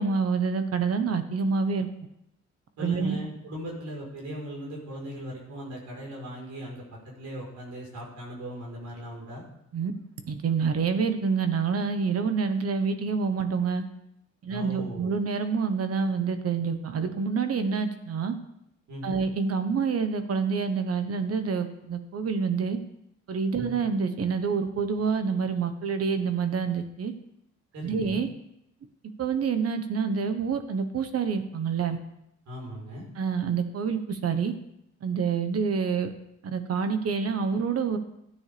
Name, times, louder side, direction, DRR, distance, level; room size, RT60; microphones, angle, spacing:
voice 1, 0.0-1.9 2.8-3.2 9.7-9.9 10.3-13.8 14.4-18.3 19.0-22.8 23.3-27.1 27.8-28.3 29.2-32.0 33.2-34.5 35.0-36.1 36.4-38.0, right 5 dB, 55° right, 9 dB, 1.2 m, -27 dB
voice 2, 2.8-6.8 7.2-9.4 14.5-15.1 18.9-19.2 23.6-23.8 27.7-28.2 32.5-33.1, equal, 70° right, -3 dB, 4.5 m, -38 dB
13.0 x 9.4 x 3.5 m, 0.80 s
cardioid pair, 90°, 30 cm